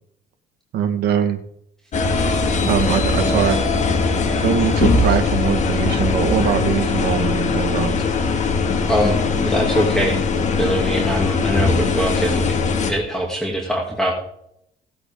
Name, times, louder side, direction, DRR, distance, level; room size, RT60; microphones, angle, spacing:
voice 1, 0.7-1.4 2.6-3.6 4.4-7.9, right 8 dB, 70° right, 5 dB, 1.4 m, -21 dB
sound 1, 1.9-12.9, left 4 dB, 45° left, 2.0 m, -20 dB
voice 2, 8.9-10.2 10.6-12.6 12.9-14.1, equal, 5° left, -1 dB, 2.5 m, -22 dB
17.0 x 8.0 x 3.7 m, 0.73 s
cardioid pair, 110°, 17 cm